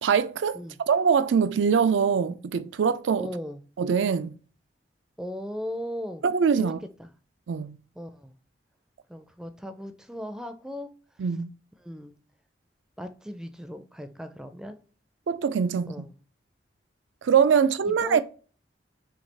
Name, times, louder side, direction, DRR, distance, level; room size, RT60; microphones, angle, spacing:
voice 1, 0.0-0.6 0.9-3.3 3.8-4.4 6.2-6.8 7.5-7.8 11.2-11.5 15.3-16.1 17.2-18.2, right 6 dB, 85° right, 0.4 m, -23 dB
voice 2, 3.2-3.6 5.2-6.2 6.5-6.7 7.0-7.1 8.0-8.3 9.1-10.9 11.8-12.2 13.0-14.8 15.9-16.1 17.9-18.2, equal, 5° right, 0.4 m, -37 dB
5.9 x 2.4 x 3.3 m
head